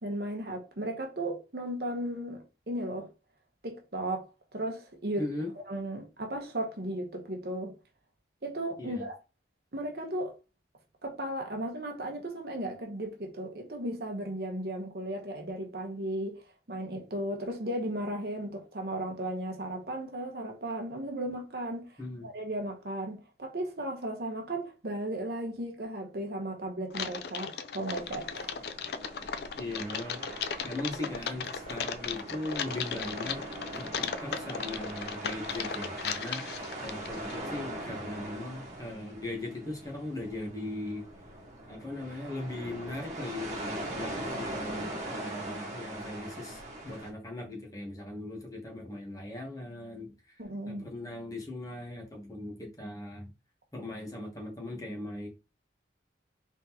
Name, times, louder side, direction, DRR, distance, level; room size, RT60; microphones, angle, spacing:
voice 1, 0.0-3.1 3.6-5.3 5.7-7.7 8.4-9.2 9.7-10.3 11.0-16.4 16.7-21.9 22.2-28.6 50.4-50.9, right 1 dB, 60° right, 1.0 m, -35 dB
voice 2, 5.2-5.5 8.8-9.1 22.0-22.3 29.6-33.4 33.7-41.0 41.7-53.3 53.7-55.3, left 2 dB, 20° left, 1.1 m, -39 dB
Typing, 26.9-37.4, left 6 dB, 60° left, 0.4 m, -37 dB
sound 1, 27.9-47.1, right 1 dB, 40° right, 1.4 m, -41 dB
3.8 x 3.6 x 2.9 m
head